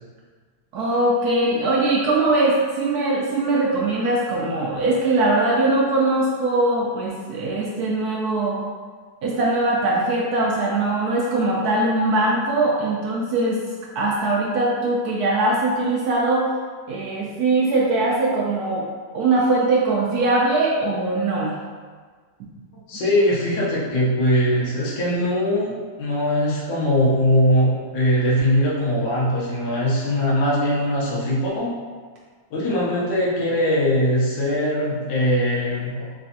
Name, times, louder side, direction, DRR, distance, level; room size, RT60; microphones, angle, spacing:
voice 1, 0.7-8.6 9.2-13.6 13.9-16.5 16.9-18.9 19.1-21.5, right 2 dB, 70° right, -4 dB, 1.0 m, -21 dB
voice 2, 22.9-31.7 32.5-36.1, equal, 80° left, -6 dB, 1.5 m, -21 dB
3.8 x 3.3 x 2.7 m, 1.5 s
omnidirectional pair, 1.9 m